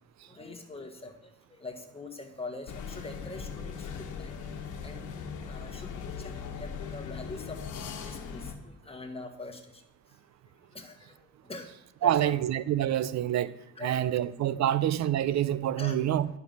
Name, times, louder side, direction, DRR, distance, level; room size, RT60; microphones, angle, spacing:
voice 1, 0.2-4.4 4.7-9.8 10.1-10.2 10.5-11.7 12.0-12.3 13.0-13.1 13.7-14.0 14.7-14.8 15.8-16.0, left 2 dB, 20° left, 1.6 m, -44 dB
sound 1, 2.7-8.6, left 6 dB, 80° left, 1.2 m, -39 dB
voice 2, 12.0-13.5 13.8-16.3, right 11 dB, 65° right, 0.6 m, -27 dB
10.5 x 5.5 x 5.7 m
cardioid pair, 90°, 30 cm